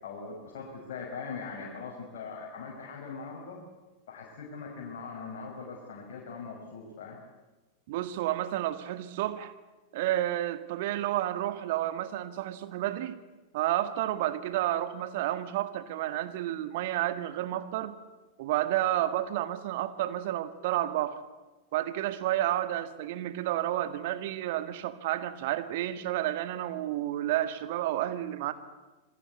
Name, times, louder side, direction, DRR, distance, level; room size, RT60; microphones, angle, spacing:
voice 1, 0.0-3.6 4.1-7.2, left 5 dB, 55° left, -2 dB, 5.8 m, -41 dB
voice 2, 7.9-9.5 9.9-13.2 13.5-17.9 18.4-21.2 21.7-28.5, right 13 dB, 50° right, 11 dB, 1.8 m, -30 dB
27.0 x 22.5 x 8.4 m, 1.2 s
figure-of-eight pair, 90°, 0 cm